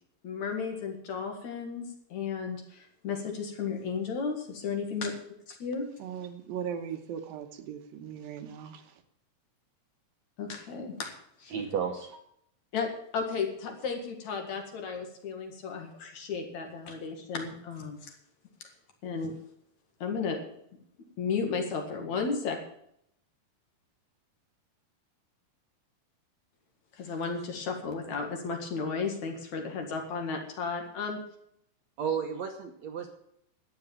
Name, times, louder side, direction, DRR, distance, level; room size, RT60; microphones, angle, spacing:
voice 1, 0.2-1.8 2.1-5.1 5.5-5.9 10.4-11.1 11.4-11.5 12.7-18.1 19.0-19.3 20.0-20.4 21.2-22.6 26.9-31.2, left 5 dB, 55° left, 2 dB, 3.0 m, -34 dB
voice 2, 6.0-8.9, right 8 dB, 80° right, 6 dB, 2.9 m, -38 dB
voice 3, 11.5-12.2 32.0-33.1, right 7 dB, 65° right, 4 dB, 1.9 m, -32 dB
12.0 x 9.0 x 7.2 m, 0.72 s
omnidirectional pair, 4.1 m